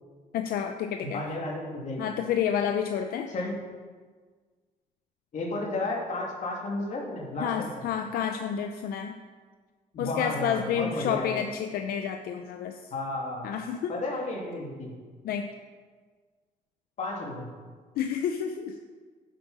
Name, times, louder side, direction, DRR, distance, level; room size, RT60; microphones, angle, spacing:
voice 1, 0.3-1.2 2.0-3.3 7.4-9.2 10.0-12.9 13.4-13.9 15.2-15.5 18.0-18.8, left 8 dB, 85° left, 6 dB, 0.6 m, -30 dB
voice 2, 1.1-2.1 3.3-3.5 5.3-7.7 9.9-11.4 12.9-13.5 13.9-14.9 17.0-17.5, left 2 dB, 55° left, -2 dB, 2.6 m, -32 dB
9.5 x 7.5 x 5.4 m, 1.5 s
cardioid pair, 120°, 15 cm